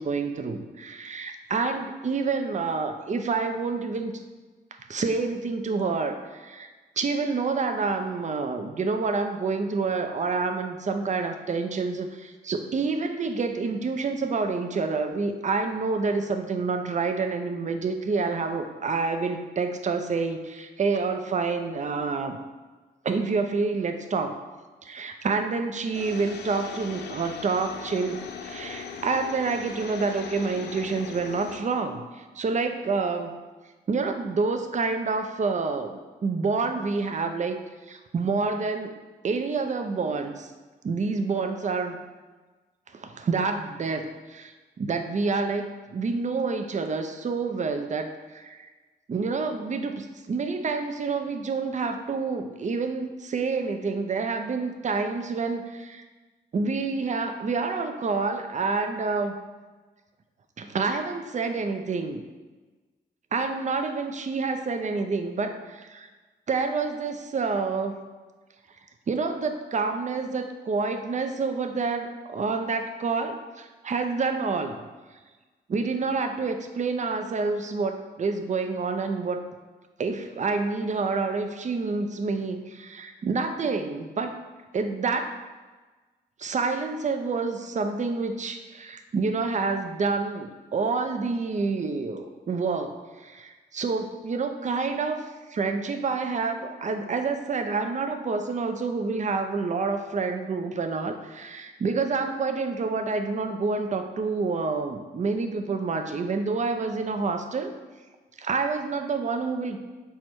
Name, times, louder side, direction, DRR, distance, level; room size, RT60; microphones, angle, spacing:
voice 1, 0.0-4.2 4.9-6.7 7.0-22.4 23.0-24.4 24.8-33.3 33.9-37.6 37.9-39.0 39.2-40.5 40.8-42.0 42.9-48.7 49.1-56.0 56.5-59.4 60.6-62.2 63.3-66.1 66.5-68.0 69.1-74.8 75.7-79.4 80.0-84.5 84.7-85.4 86.4-107.7 108.4-109.8, right 4 dB, 40° right, 7 dB, 0.5 m, -28 dB
sound 1, 25.9-31.6, left 6 dB, 65° left, 0.4 m, -39 dB
4.6 x 2.2 x 4.3 m, 1.3 s
supercardioid pair, 45°, 18 cm